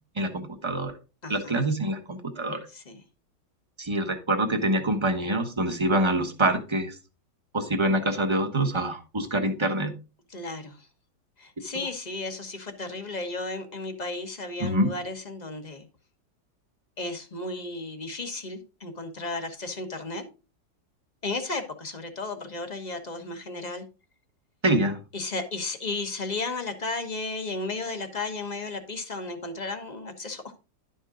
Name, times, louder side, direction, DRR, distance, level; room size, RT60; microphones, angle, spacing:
voice 1, 0.1-0.9 1.3-2.6 3.8-6.9 7.5-9.9 14.6-14.9 24.6-25.0, right 1 dB, 20° right, 4 dB, 1.1 m, -25 dB
voice 2, 1.2-1.6 2.7-3.0 10.3-10.9 11.4-15.8 17.0-20.2 21.2-23.8 25.1-30.6, left 3 dB, 25° left, 6 dB, 1.1 m, -34 dB
11.5 x 5.5 x 3.7 m, 0.31 s
omnidirectional pair, 1.9 m